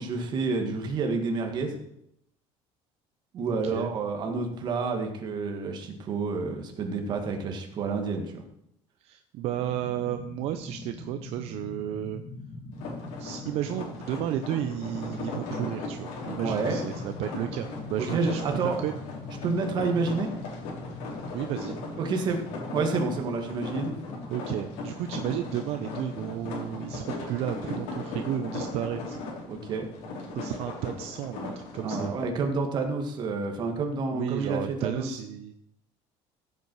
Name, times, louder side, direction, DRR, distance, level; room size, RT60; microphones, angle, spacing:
voice 1, 0.0-1.8 3.3-8.4 16.4-16.8 18.0-18.8 19.4-20.3 22.0-22.4 22.7-23.9 29.5-29.9 31.8-35.1, right 4 dB, 40° right, 4 dB, 2.0 m, -29 dB
voice 2, 3.5-3.9 9.0-12.2 13.2-19.0 21.3-21.8 24.3-29.2 30.3-32.1 34.1-35.6, right 11 dB, 65° right, 8 dB, 0.7 m, -33 dB
sound 1, 9.5-27.0, left 3 dB, 30° left, 1.6 m, -43 dB
sound 2, 12.7-32.3, left 3 dB, 85° left, 4.0 m, -38 dB
15.0 x 8.3 x 4.7 m, 0.75 s
cardioid pair, 170°, 12 cm